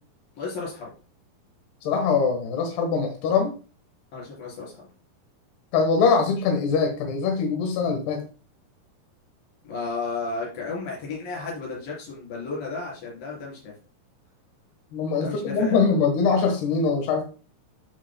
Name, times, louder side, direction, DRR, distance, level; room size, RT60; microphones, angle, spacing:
voice 1, 0.4-0.9 4.1-4.9 9.6-13.7 15.2-15.8, left 4 dB, 65° left, -3 dB, 5.7 m, -33 dB
voice 2, 1.8-3.5 5.7-8.3 14.9-17.2, left 5 dB, 90° left, 4 dB, 3.4 m, -23 dB
12.5 x 5.7 x 2.2 m, 0.35 s
omnidirectional pair, 4.5 m